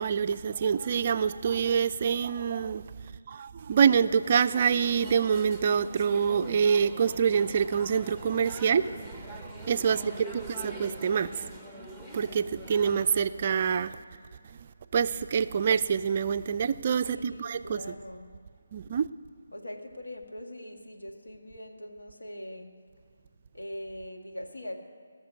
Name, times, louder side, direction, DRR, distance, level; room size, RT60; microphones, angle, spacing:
voice 1, 0.0-2.9 3.3-9.1 9.7-11.4 12.1-13.9 14.9-17.8 18.7-19.1, right 7 dB, 35° right, 0.3 m, -26 dB
sound 1, 4.2-13.0, right 1 dB, 5° left, 1.0 m, -44 dB
voice 2, 9.9-11.0 17.1-18.4 19.5-22.7 23.5-24.8, left 1 dB, 80° left, 1.6 m, -42 dB
17.0 x 6.6 x 8.2 m
figure-of-eight pair, 155°, 0 cm